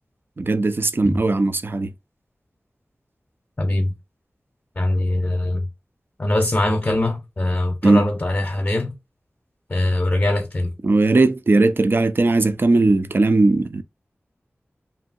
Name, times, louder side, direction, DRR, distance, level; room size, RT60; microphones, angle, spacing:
voice 1, 0.4-1.9 7.8-8.1 10.8-13.8, right 2 dB, 50° right, 0.4 m, -18 dB
voice 2, 3.6-3.9 4.8-5.7 6.2-8.9 9.7-10.7, left 1 dB, 40° left, 0.7 m, -22 dB
2.8 x 2.7 x 2.5 m
wide cardioid pair, 55°, 5 cm